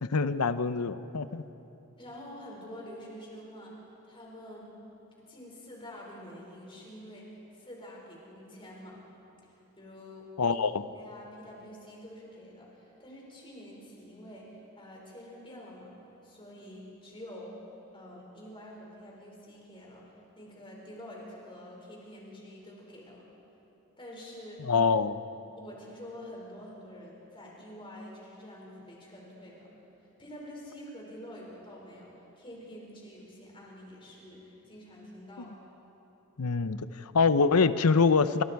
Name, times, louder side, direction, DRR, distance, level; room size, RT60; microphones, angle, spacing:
voice 1, 0.0-1.4 10.4-10.8 24.6-25.2 36.4-38.4, left 4 dB, 85° left, 13 dB, 0.8 m, -25 dB
voice 2, 2.0-3.8 4.1-4.7 5.3-9.0 9.5-10.3 10.9-15.9 16.2-17.6 17.9-20.1 20.4-23.3 24.0-24.6 25.6-29.7 30.2-35.5, equal, 25° left, -3 dB, 5.5 m, -47 dB
28.5 x 26.5 x 4.7 m, 3.0 s
head